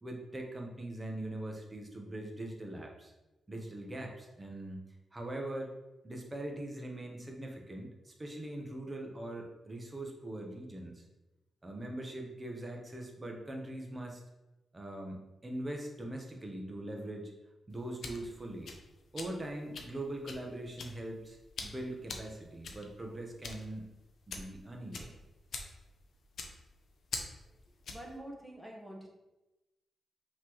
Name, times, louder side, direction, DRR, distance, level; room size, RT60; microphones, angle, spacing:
voice 1, 0.0-3.1 3.5-4.8 5.1-5.7 6.0-11.1 11.6-14.2 14.7-17.3 17.7-18.7 19.1-23.8 24.3-25.2, right 1 dB, 25° right, 1 dB, 0.9 m, -42 dB
sound 1, 17.7-28.2, left 4 dB, 70° left, 0.6 m, -45 dB
voice 2, 27.9-29.1, right 1 dB, ahead, -2 dB, 1.1 m, -47 dB
5.7 x 3.0 x 3.1 m, 1.0 s
cardioid pair, 85°, 0 cm